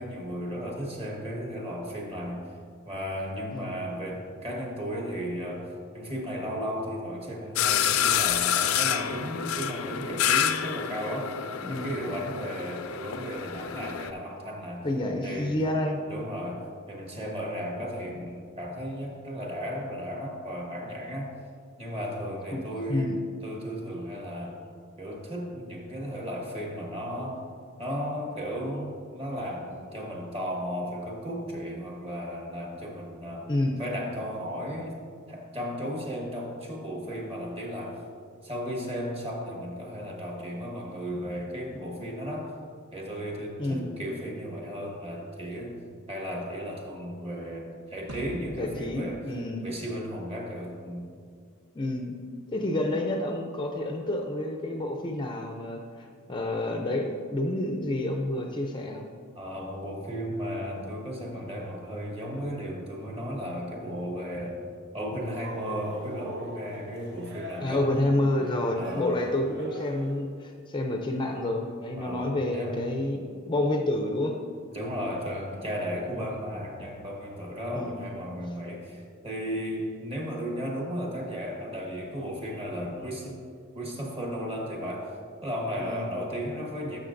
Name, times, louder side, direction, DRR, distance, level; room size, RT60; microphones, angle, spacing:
voice 1, 0.0-2.4 2.8-11.3 11.7-14.9 15.2-15.6 16.1-21.4 21.8-23.2 23.4-24.6 25.0-27.4 27.8-33.5 33.8-35.0 35.3-38.0 38.4-42.5 42.9-45.8 46.1-49.2 49.6-51.1 59.3-64.6 64.9-67.9 68.7-69.2 72.0-72.8 74.7-83.4 83.7-85.1 85.4-87.0, equal, 30° right, -1 dB, 1.3 m, -35 dB
sound 1, 7.6-14.1, left 9 dB, 80° left, 0.4 m, -28 dB
voice 2, 11.6-12.0 14.8-16.0 22.5-22.6 22.9-23.2 33.5-33.8 43.6-43.9 48.5-49.7 51.7-52.1 52.5-59.1 67.6-74.4 77.7-78.0 85.8-86.1, left 1 dB, 25° left, 3 dB, 0.4 m, -29 dB
sound 2, 48.1-50.6, equal, 80° right, 1.0 m, -43 dB
Cheering, 65.3-70.3, right 1 dB, 55° right, 0.7 m, -42 dB
12.5 x 6.4 x 2.5 m, 2.2 s
head